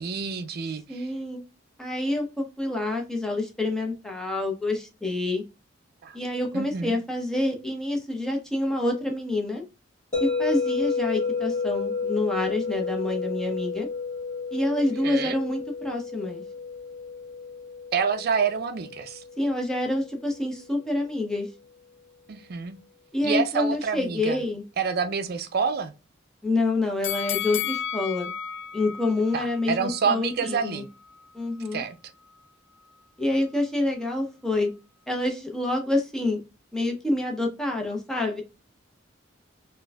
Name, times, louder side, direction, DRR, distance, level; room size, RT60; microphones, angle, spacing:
voice 1, 0.0-1.1 6.0-6.2 6.5-7.0 14.8-15.4 17.9-19.2 22.3-22.8 23.2-24.4 24.8-25.9 29.3-30.9 31.7-32.0, right 6 dB, 55° right, 0.4 m, -28 dB
voice 2, 0.9-1.4 1.8-5.4 6.1-9.6 10.2-13.9 14.5-16.4 19.4-21.5 23.1-24.6 26.4-28.3 28.7-30.8 31.3-31.8 33.2-34.7 35.1-36.4 36.7-38.4, left 2 dB, 5° left, 0.6 m, -27 dB
sound 1, 10.1-20.2, left 4 dB, 35° left, 1.3 m, -31 dB
sound 2, 27.0-30.1 30.5-30.6, left 10 dB, 65° left, 0.3 m, -33 dB
4.2 x 2.6 x 2.3 m
head